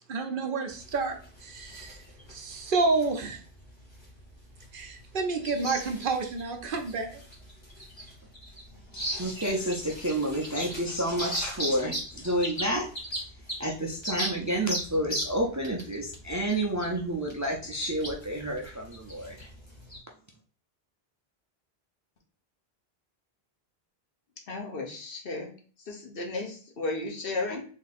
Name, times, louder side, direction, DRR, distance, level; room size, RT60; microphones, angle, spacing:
voice 1, 0.1-2.0 2.3-3.4 4.7-7.2, right 3 dB, 60° right, 0.8 m, -29 dB
sound 1, 0.7-20.0, equal, 25° left, 1.4 m, -39 dB
voice 2, 8.9-12.9 13.6-19.5, right 1 dB, 20° right, 0.5 m, -30 dB
voice 3, 24.5-25.5 25.9-27.7, left 3 dB, 65° left, 1.1 m, -34 dB
3.6 x 2.8 x 4.1 m
omnidirectional pair, 1.0 m